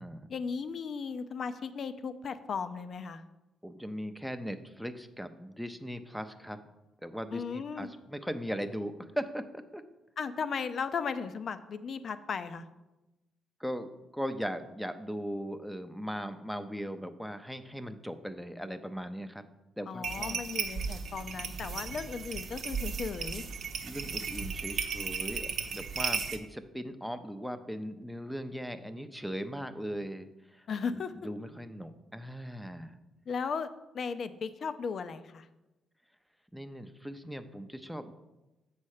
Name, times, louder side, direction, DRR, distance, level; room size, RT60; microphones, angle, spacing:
voice 1, 0.3-3.2 7.3-7.9 10.2-12.6 19.9-23.4 30.7-31.1 33.3-33.7 33.9-35.5, left 5 dB, 55° left, 12 dB, 0.5 m, -36 dB
voice 2, 3.6-6.6 7.0-9.8 13.6-19.4 19.8-20.4 23.8-30.7 30.9-33.0 36.5-38.1, equal, ahead, 9 dB, 0.6 m, -39 dB
sound 1, 20.0-26.4, right 6 dB, 65° right, 0.8 m, -35 dB
7.3 x 4.3 x 6.6 m, 1.0 s
cardioid pair, 90°, 0 cm